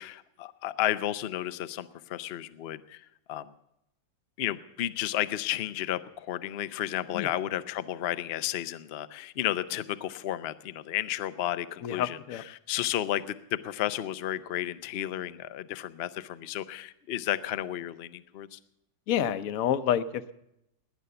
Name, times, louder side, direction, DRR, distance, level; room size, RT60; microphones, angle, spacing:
voice 1, 0.0-3.5 4.4-18.6, left 12 dB, 85° left, 14 dB, 0.5 m, -33 dB
voice 2, 11.8-12.4 19.1-20.3, left 10 dB, 60° left, 13 dB, 1.0 m, -28 dB
19.0 x 10.5 x 6.9 m, 0.82 s
omnidirectional pair, 2.0 m